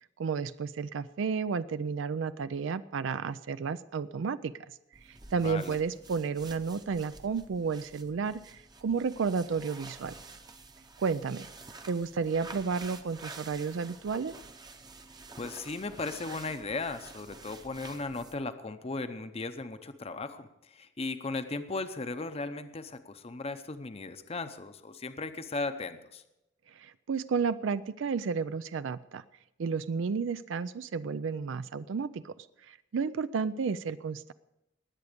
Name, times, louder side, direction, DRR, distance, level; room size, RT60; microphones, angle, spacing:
voice 1, 0.2-4.5 5.3-10.1 11.0-11.5 11.9-14.3 26.8-29.2 29.6-34.3, right 5 dB, 75° right, 15 dB, 0.4 m, -32 dB
sound 1, 4.9-18.5, right 3 dB, 20° right, 0.8 m, -49 dB
voice 2, 5.4-5.8 15.4-26.2, left 3 dB, 30° left, 10 dB, 0.7 m, -37 dB
20.5 x 8.2 x 5.1 m, 0.89 s
head